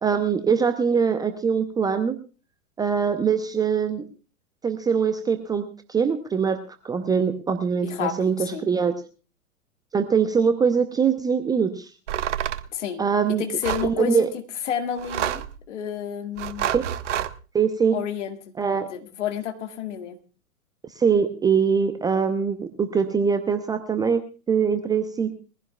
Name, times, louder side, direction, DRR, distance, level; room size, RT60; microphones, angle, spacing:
voice 1, 0.0-2.2 2.8-4.0 4.6-8.9 9.9-11.9 13.0-13.4 13.8-14.3 16.7-16.8 17.5-18.0 18.6-18.9 21.0-25.3, right 6 dB, 10° right, 8 dB, 0.6 m, -23 dB
voice 2, 7.8-8.6 12.7-13.0 13.3-14.3 14.7-16.7 17.9-18.4 18.8-20.2, left 8 dB, 55° left, 6 dB, 2.0 m, -30 dB
sound 1, 12.1-12.7 13.6-13.9 15.0-15.6 16.4-17.3, right 11 dB, 55° right, 0.9 m, -28 dB
22.0 x 15.5 x 2.3 m, 0.35 s
figure-of-eight pair, 105°, 43 cm